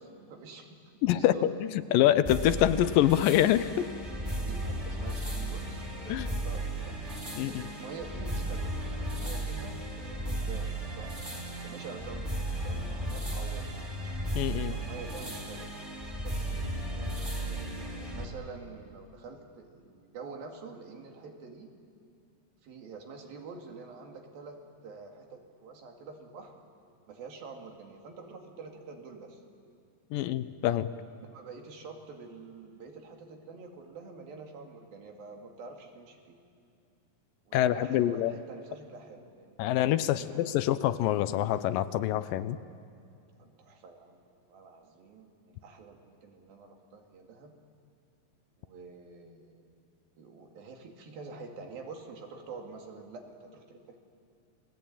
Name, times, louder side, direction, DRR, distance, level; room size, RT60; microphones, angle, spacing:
voice 1, 0.0-1.5 4.5-7.0 7.5-13.9 14.7-15.7 16.2-21.7 22.6-26.6 27.1-29.4 31.1-36.4 37.5-40.6 41.0-41.2 43.4-47.5 48.6-49.8 50.2-54.0, right 4 dB, 85° right, 2 dB, 4.1 m, -47 dB
voice 2, 1.0-3.9 6.1-6.3 7.4-7.6 14.4-14.8 30.1-30.9 37.5-38.3 39.6-42.6, left 12 dB, 80° left, 13 dB, 2.3 m, -26 dB
sound 1, 2.2-18.2, right 1 dB, 10° right, 2.9 m, -35 dB
30.0 x 19.5 x 8.8 m, 2.5 s
omnidirectional pair, 4.1 m